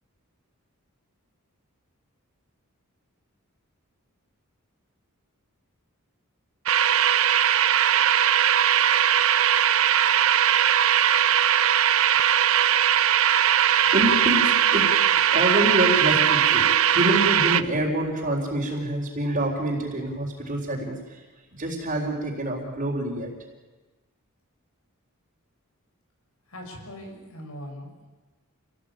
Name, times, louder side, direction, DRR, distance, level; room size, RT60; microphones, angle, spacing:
sound 1, 6.7-17.6, right 10 dB, 65° right, 0.7 m, -20 dB
voice 1, 13.5-21.2 21.5-23.3, right 1 dB, 35° right, -5 dB, 4.0 m, -27 dB
voice 2, 26.5-28.1, equal, 70° left, 3 dB, 6.8 m, -40 dB
28.0 x 18.5 x 8.9 m, 1.2 s
head